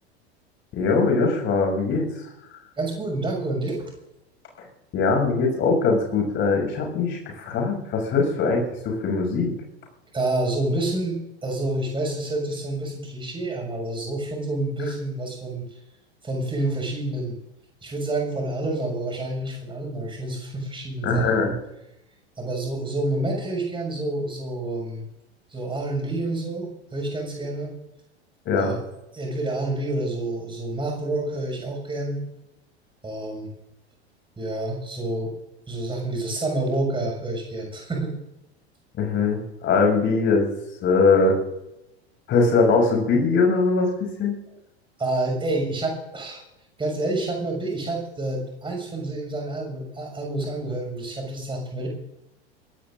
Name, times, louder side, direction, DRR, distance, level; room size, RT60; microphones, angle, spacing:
voice 1, 0.7-2.1 4.9-9.5 21.0-21.5 28.5-28.8 39.0-40.5 40.8-41.4 42.3-44.4, left 4 dB, 35° left, 2 dB, 6.9 m, -21 dB
voice 2, 2.8-3.9 10.1-15.8 16.2-17.4 17.8-21.3 22.4-25.0 25.5-27.7 28.6-28.8 29.1-32.2 33.0-33.5 34.4-35.3 35.7-38.1 45.0-46.4 46.8-51.9, right 2 dB, 15° right, 1 dB, 6.4 m, -28 dB
24.0 x 17.0 x 2.6 m, 0.88 s
figure-of-eight pair, 80°, 33 cm